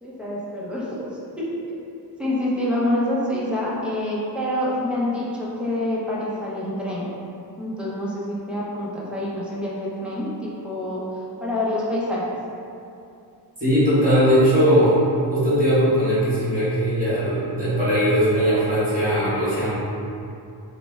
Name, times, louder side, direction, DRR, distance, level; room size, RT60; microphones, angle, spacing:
voice 1, 0.0-1.8 2.2-7.1 7.6-12.3, left 1 dB, 5° right, -7 dB, 0.5 m, -27 dB
voice 2, 13.6-15.0 15.3-19.7, equal, 20° right, -12 dB, 1.3 m, -19 dB
3.1 x 2.1 x 3.3 m, 2.6 s
wide cardioid pair, 160°, 40 cm